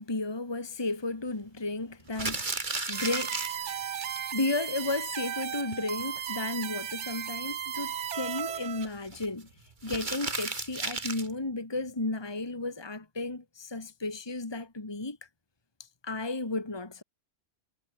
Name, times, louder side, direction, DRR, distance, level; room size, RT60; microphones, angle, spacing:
voice 1, 0.0-2.5 2.9-4.0 4.3-9.5 9.8-15.2 16.0-17.0, left 2 dB, 20° left, 1.8 m, -33 dB
sound 1, 2.1-4.2 4.5-4.6 4.8-4.9 5.2-5.3 5.7-6.0 8.0-9.3 9.8-11.3, right 3 dB, 40° right, 2.2 m, -34 dB
sound 2, 2.9-8.9, right 9 dB, 80° right, 1.2 m, -36 dB
omnidirectional pair, 1.2 m